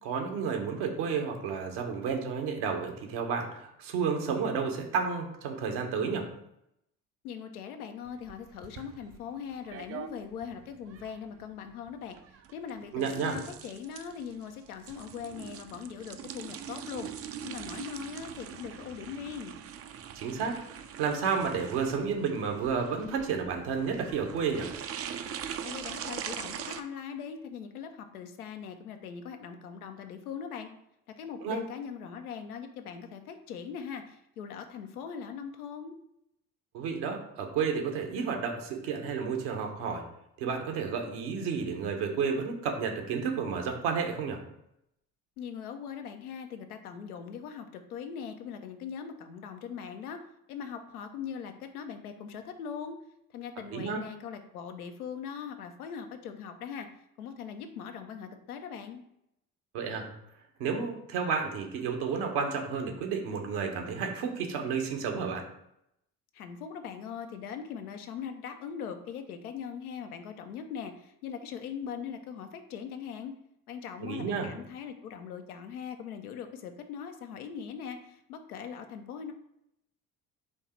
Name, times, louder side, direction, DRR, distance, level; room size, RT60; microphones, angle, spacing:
voice 1, 0.0-6.3 12.9-13.4 20.1-24.7 31.4-31.6 36.7-40.0 40.4-44.4 53.7-54.0 59.7-60.1 60.6-65.4 74.0-74.5, right 5 dB, 65° right, 3 dB, 1.0 m, -31 dB
voice 2, 7.2-12.2 12.5-19.6 25.6-30.7 31.2-36.0 45.4-50.2 50.5-53.0 53.3-56.9 57.2-59.0 66.3-73.3 73.7-79.3, left 7 dB, 85° left, 6 dB, 0.6 m, -41 dB
sound 1, 8.1-26.8, right 8 dB, 35° right, 0.4 m, -42 dB
4.5 x 2.7 x 4.3 m, 0.79 s
hypercardioid pair, 50°, 44 cm